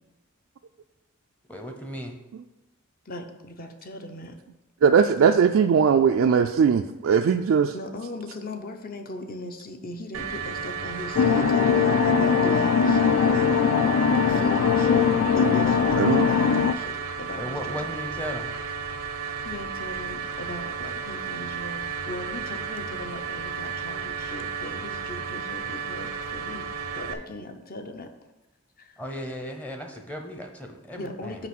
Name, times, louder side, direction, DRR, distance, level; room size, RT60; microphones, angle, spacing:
voice 1, 1.5-2.2 15.7-15.8 17.3-18.5 29.0-31.5, equal, 5° left, 3 dB, 0.7 m, -36 dB
voice 2, 3.1-4.4 7.7-17.9 19.4-26.7 26.9-28.1 28.8-29.1 30.9-31.5, left 1 dB, 45° left, 6 dB, 0.7 m, -39 dB
voice 3, 4.8-7.7 16.0-16.3, right 6 dB, 70° right, 5 dB, 0.3 m, -19 dB
sound 1, 10.1-27.1, right 6 dB, 90° right, 0.7 m, -33 dB
sound 2, 11.1-16.7, left 6 dB, 65° left, 0.3 m, -21 dB
5.9 x 5.1 x 6.0 m, 1.0 s
head